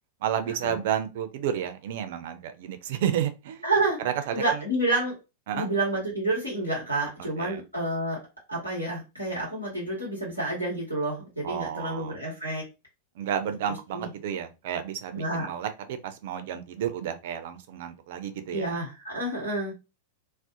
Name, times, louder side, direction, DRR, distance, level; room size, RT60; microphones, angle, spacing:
voice 1, 0.2-3.6 4.0-4.6 5.5-5.7 7.4-7.6 11.4-12.1 13.2-18.8, right 9 dB, 55° right, 0.4 m, -31 dB
voice 2, 3.6-4.0 4.3-5.1 5.5-8.2 8.5-12.6 13.9-14.1 15.1-15.5 18.5-19.7, right 2 dB, 85° left, 1.0 m, -29 dB
2.5 x 2.0 x 2.6 m
figure-of-eight pair, 90°, 0 cm